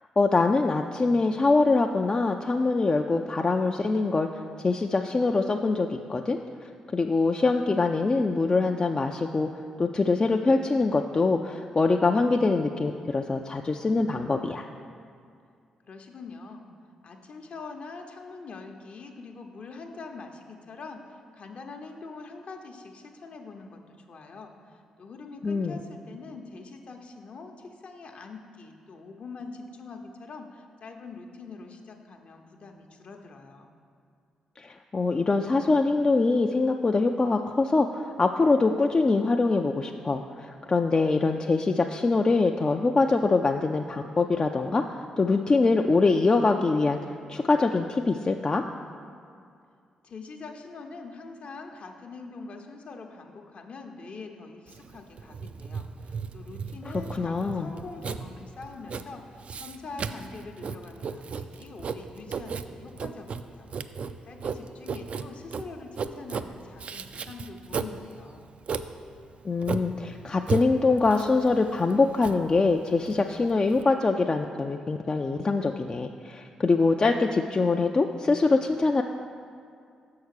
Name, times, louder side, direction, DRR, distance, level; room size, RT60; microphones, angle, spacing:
voice 1, 0.2-6.4 6.9-9.5 9.8-14.7 25.4-25.8 34.6-47.0 47.3-48.6 56.9-57.7 69.4-79.0, left 3 dB, 35° left, 3 dB, 0.3 m, -24 dB
voice 2, 15.8-16.7 17.0-33.7 50.0-63.7 64.0-68.5, left 4 dB, 55° left, 3 dB, 0.8 m, -44 dB
Writing, 54.7-73.8, right 5 dB, 50° right, 0.3 m, -36 dB
6.4 x 4.7 x 6.5 m, 2.3 s
hypercardioid pair, 45°, 3 cm